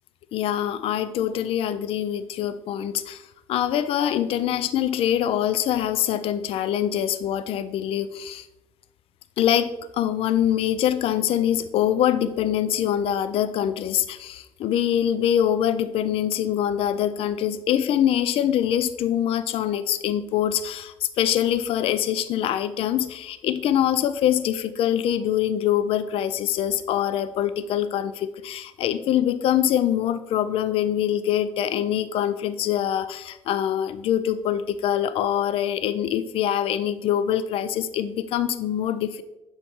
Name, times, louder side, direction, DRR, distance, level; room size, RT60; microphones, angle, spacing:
voice 1, 0.3-8.5 9.4-39.2, left 10 dB, 70° left, 13 dB, 0.4 m, -24 dB
6.9 x 4.4 x 3.6 m, 0.95 s
cardioid pair, 95°, 10 cm